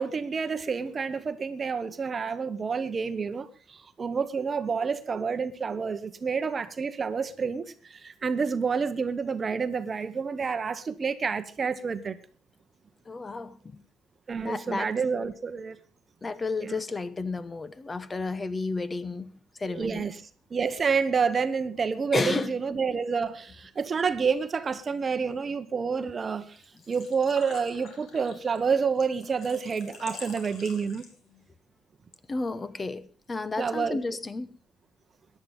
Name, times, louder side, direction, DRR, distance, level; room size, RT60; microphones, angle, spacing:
voice 1, 0.0-12.2 14.3-15.8 16.6-16.8 19.7-20.2 20.5-26.6 26.9-31.0 33.6-34.0, right 5 dB, 30° right, 11 dB, 1.0 m, -29 dB
voice 2, 13.1-13.8 14.4-14.9 16.2-19.3 19.6-20.0 22.1-22.5 32.3-34.5, left 3 dB, 25° left, 16 dB, 0.9 m, -32 dB
Engine / Trickle dribble / Fill (with liquid), 26.6-31.4, left 4 dB, 55° left, 3.3 m, -46 dB
14.5 x 10.5 x 5.3 m, 0.40 s
cardioid pair, 110°, 0 cm